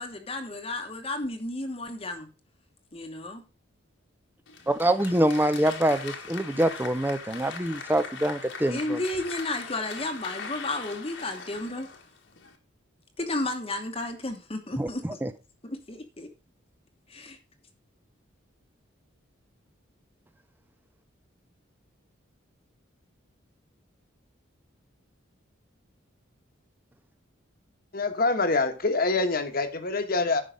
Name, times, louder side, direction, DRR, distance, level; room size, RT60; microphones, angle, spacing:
voice 1, 0.0-2.3 2.9-3.4 8.7-11.9 13.2-15.2 15.6-16.3 17.1-17.4, left 2 dB, 30° left, 5 dB, 1.1 m, -33 dB
Applause, 4.5-12.6, left 5 dB, 65° left, 1.6 m, -41 dB
voice 2, 4.7-9.0 14.8-14.9 15.2-15.3, right 1 dB, 10° right, 11 dB, 0.6 m, -25 dB
voice 3, 27.9-30.4, left 3 dB, 45° left, 8 dB, 1.3 m, -25 dB
10.0 x 5.7 x 5.1 m, 0.31 s
head